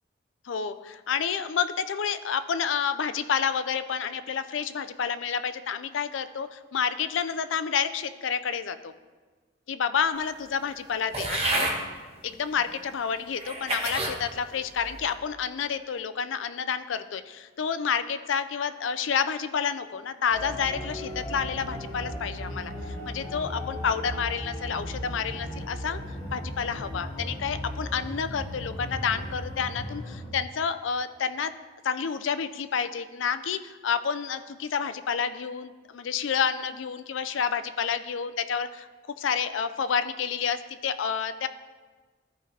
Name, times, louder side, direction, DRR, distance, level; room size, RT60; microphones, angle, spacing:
voice 1, 0.5-8.9 9.7-11.7 12.2-26.0 26.3-31.5 31.8-38.9 39.2-41.5, left 7 dB, 75° left, 12 dB, 0.4 m, -29 dB
sound 1, 11.1-11.8 12.6-12.7 13.4-14.2 14.7-15.1, right 2 dB, 30° right, 1.2 m, -29 dB
sound 2, 20.3-30.3, left 1 dB, 20° left, 1.7 m, -36 dB
13.5 x 5.0 x 3.3 m, 1.4 s
head